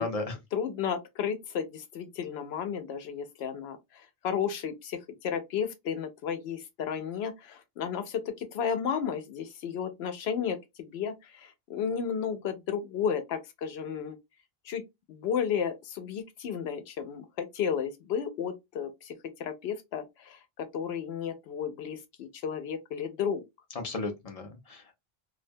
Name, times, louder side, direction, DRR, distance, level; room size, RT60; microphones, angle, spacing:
voice 1, 0.0-0.3 23.8-24.9, left 3 dB, 45° left, 0.6 m, -34 dB
voice 2, 0.5-14.2 14.6-14.8 15.1-23.4, left 7 dB, 90° left, 0.8 m, -33 dB
2.4 x 2.1 x 2.5 m
omnidirectional pair, 1.0 m